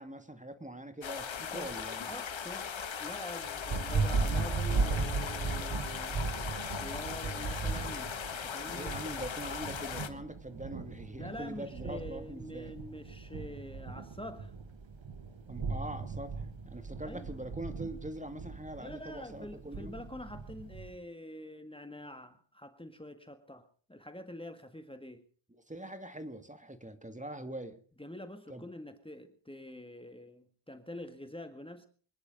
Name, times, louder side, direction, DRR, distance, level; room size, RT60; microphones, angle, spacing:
voice 1, 0.0-2.1 8.6-12.7 15.5-20.0 25.5-27.8 28.5-28.7, right 1 dB, 15° right, 8 dB, 2.2 m, -43 dB
sound 1, 1.0-10.1, left 7 dB, 85° left, 1.6 m, -39 dB
voice 2, 1.4-6.2 6.8-8.9 11.2-14.5 17.0-17.3 18.8-25.2 28.0-31.9, left 1 dB, 10° left, 7 dB, 1.8 m, -46 dB
Thunder, 3.4-20.9, right 4 dB, 85° right, 1.7 m, -37 dB
25.0 x 10.5 x 5.3 m, 0.43 s
wide cardioid pair, 65°, 45 cm